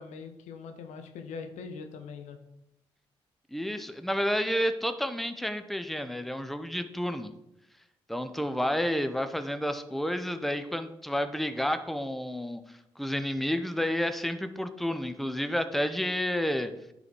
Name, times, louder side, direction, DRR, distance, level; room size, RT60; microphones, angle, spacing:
voice 1, 0.0-2.4, left 5 dB, 80° left, 6 dB, 0.9 m, -42 dB
voice 2, 3.5-7.3 8.1-12.6 13.0-16.7, equal, ahead, 9 dB, 0.9 m, -30 dB
10.5 x 4.1 x 4.6 m, 0.85 s
hypercardioid pair, 40°, 12 cm